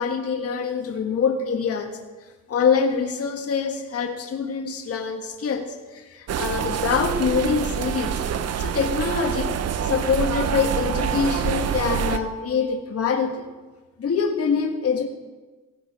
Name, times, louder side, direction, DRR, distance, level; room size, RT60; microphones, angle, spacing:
voice 1, 0.0-1.9 2.5-8.1 8.6-9.5 9.8-13.5 14.0-15.1, left 6 dB, 50° left, 3 dB, 1.7 m, -25 dB
sound 1, 6.3-12.2, right 8 dB, 55° right, 0.9 m, -26 dB
16.5 x 13.5 x 5.0 m, 1.3 s
cardioid pair, 90°, 30 cm